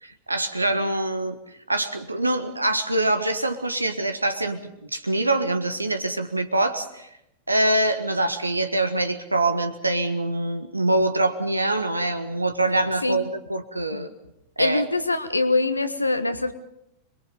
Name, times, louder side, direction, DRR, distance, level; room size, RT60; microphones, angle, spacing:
voice 1, 0.0-1.4 1.7-7.1 7.5-14.1 14.6-14.8, right 2 dB, 85° right, 8 dB, 1.6 m, -24 dB
voice 2, 14.6-16.5, left 2 dB, 85° left, 10 dB, 1.4 m, -23 dB
26.0 x 22.5 x 5.4 m, 0.83 s
figure-of-eight pair, 90°, 0 cm